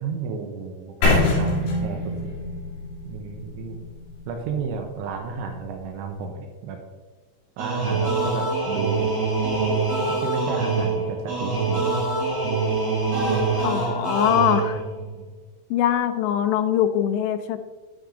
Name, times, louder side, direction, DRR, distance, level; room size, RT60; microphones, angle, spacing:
voice 1, 0.0-2.3 3.1-3.8 4.3-6.8 7.6-9.1 10.2-12.0 14.8-15.3, right 5 dB, 80° right, 3 dB, 3.1 m, -32 dB
sound 1, 1.0-5.0, left 2 dB, 60° left, 4.7 m, -25 dB
sound 2, 7.6-15.0, right 3 dB, 55° right, 5.0 m, -24 dB
voice 2, 13.6-14.8 15.7-17.6, left 10 dB, 80° left, 8 dB, 2.5 m, -22 dB
12.5 x 8.7 x 2.6 m, 1.3 s
omnidirectional pair, 5.5 m